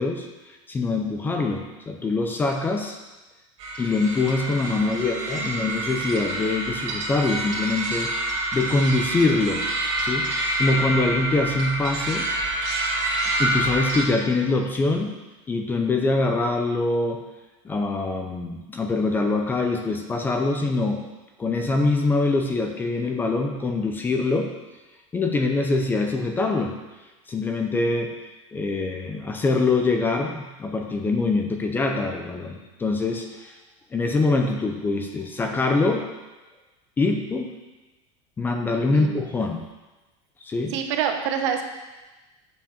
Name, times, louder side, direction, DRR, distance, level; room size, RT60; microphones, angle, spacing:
voice 1, 0.0-3.0 3.8-9.7 10.0-12.3 13.4-15.2 15.5-17.2 17.6-21.1 21.4-24.5 25.1-26.8 27.3-28.1 28.5-33.5 33.9-36.1 37.0-37.5 38.4-39.7 40.4-40.8, left 3 dB, 10° left, 3 dB, 0.6 m, -24 dB
sound 1, 3.6-14.0, right 2 dB, 45° right, 2.2 m, -27 dB
voice 2, 4.8-5.6 38.9-39.2 40.7-41.6, right 8 dB, 65° right, 5 dB, 1.2 m, -28 dB
7.4 x 5.8 x 7.1 m, 1.1 s
supercardioid pair, 165°, 16 cm